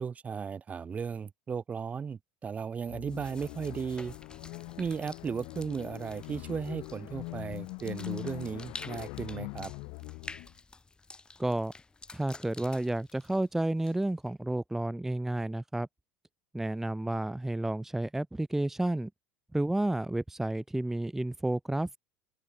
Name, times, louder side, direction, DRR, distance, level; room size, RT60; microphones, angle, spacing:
voice 1, 0.0-4.1 4.8-9.7, right 6 dB, 25° right, 1.3 m, -36 dB
sound 1, 2.9-10.5, left 31 dB, 60° left, 2.5 m, -42 dB
sound 2, 3.1-14.3, left 3 dB, 15° left, 4.2 m, -50 dB
voice 2, 11.4-11.7 12.1-15.9 16.5-19.1 19.5-22.0, right 1 dB, 5° right, 0.7 m, -31 dB
open air
hypercardioid pair, 75°, 5 cm